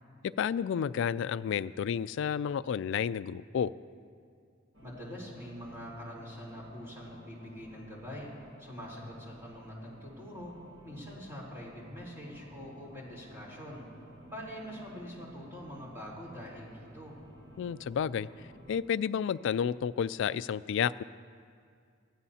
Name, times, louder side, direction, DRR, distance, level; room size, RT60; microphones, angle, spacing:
voice 1, 0.2-3.7 17.6-18.3 18.7-21.0, left 7 dB, 65° left, 17 dB, 0.3 m, -31 dB
sound 1, 4.7-18.8, equal, 60° right, 1.4 m, -53 dB
voice 2, 4.8-8.3 8.6-10.5 10.8-13.9 14.3-17.2, equal, 15° right, -5 dB, 3.6 m, -44 dB
22.0 x 15.0 x 2.8 m, 2.3 s
head